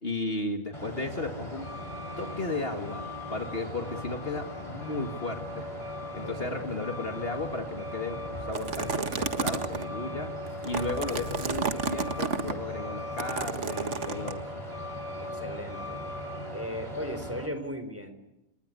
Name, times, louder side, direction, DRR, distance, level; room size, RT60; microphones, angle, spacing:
voice 1, 0.0-1.7 2.2-5.7 6.1-10.3 10.6-14.6, left 2 dB, 45° left, 5 dB, 2.2 m, -34 dB
Truck, 0.7-17.5, left 1 dB, 20° left, 5.8 m, -38 dB
voice 2, 6.2-6.7 15.2-16.0 16.5-18.1, equal, 10° right, 9 dB, 4.0 m, -37 dB
sound 1, 8.5-9.9 10.5-12.5 13.2-14.3, right 5 dB, 60° right, 1.9 m, -31 dB
30.0 x 20.0 x 9.7 m, 0.96 s
omnidirectional pair, 1.5 m